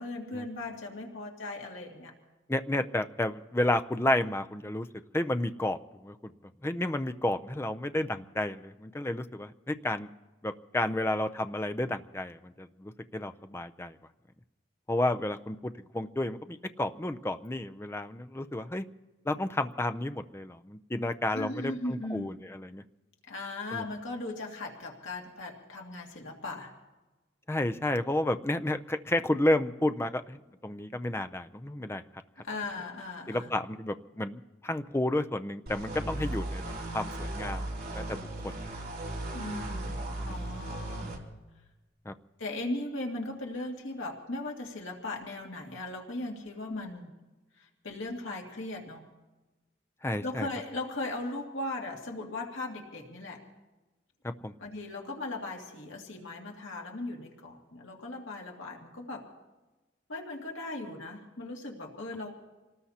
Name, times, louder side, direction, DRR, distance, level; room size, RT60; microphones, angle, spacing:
voice 1, 0.0-2.1 21.3-22.3 23.3-26.7 32.4-33.5 36.1-36.4 39.3-41.1 42.4-47.1 47.6-49.0 50.2-53.5 54.6-59.2 60.1-62.3, left 2 dB, 85° left, 0 dB, 2.2 m, -38 dB
voice 2, 2.5-4.9 5.1-6.1 6.6-10.1 10.4-14.0 14.9-18.8 19.3-22.8 23.7-23.8 27.5-32.0 33.3-36.6 36.9-37.7 37.9-38.7 40.2-40.4 42.1-42.2 50.0-50.5 54.4-54.5, left 1 dB, 15° left, 10 dB, 0.5 m, -31 dB
sound 1, 35.7-41.2, right 1 dB, 50° right, 3.0 m, -36 dB
27.0 x 19.0 x 2.8 m, 1.1 s
head